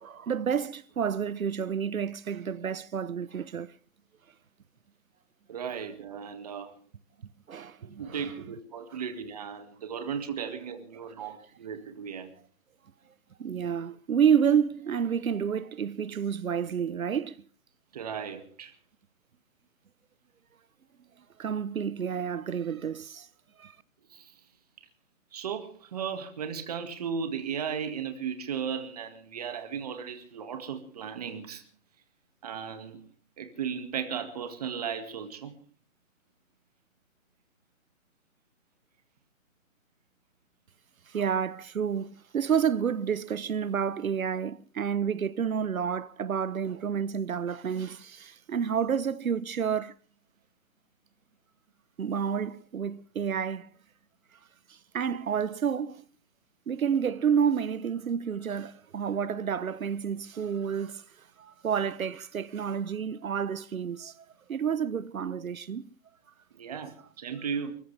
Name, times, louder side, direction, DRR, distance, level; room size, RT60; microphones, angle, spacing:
voice 1, 0.0-3.7 7.5-8.2 13.4-17.4 21.4-23.3 23.6-23.7 41.1-49.9 52.0-53.7 54.9-56.0 56.7-61.0 61.4-64.1 64.5-65.8, right 7 dB, 75° right, 1.0 m, -29 dB
voice 2, 5.5-6.7 8.0-12.3 17.9-18.7 24.1-24.3 25.3-31.6 32.4-33.0 33.4-35.6 66.5-67.8, right 7 dB, 30° right, 2.0 m, -36 dB
29.0 x 14.5 x 3.4 m
hypercardioid pair, 170°, 41 cm